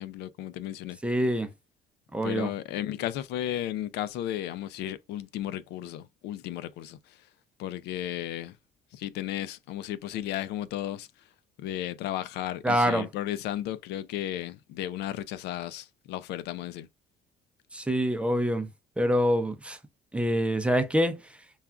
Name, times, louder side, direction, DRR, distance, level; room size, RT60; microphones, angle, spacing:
voice 1, 0.0-1.0 2.2-7.0 7.6-8.5 8.9-11.1 11.6-16.9, left 12 dB, 80° left, 0.4 m, -34 dB
voice 2, 1.0-1.5 2.1-2.5 12.6-13.1 17.7-18.7 19.0-19.8 20.1-21.2, equal, 5° right, 0.6 m, -25 dB
6.8 x 2.4 x 2.4 m
cardioid pair, 110°, 17 cm